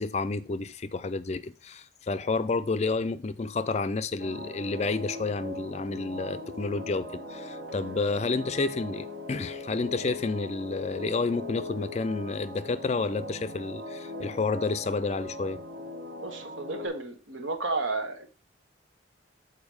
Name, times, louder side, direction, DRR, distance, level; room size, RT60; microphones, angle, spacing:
voice 1, 0.0-15.6, left 3 dB, 35° left, 0.4 m, -30 dB
sound 1, 4.2-16.9, left 1 dB, 60° right, 1.2 m, -40 dB
voice 2, 16.2-18.3, right 3 dB, 85° right, 1.2 m, -32 dB
7.2 x 4.4 x 4.8 m
head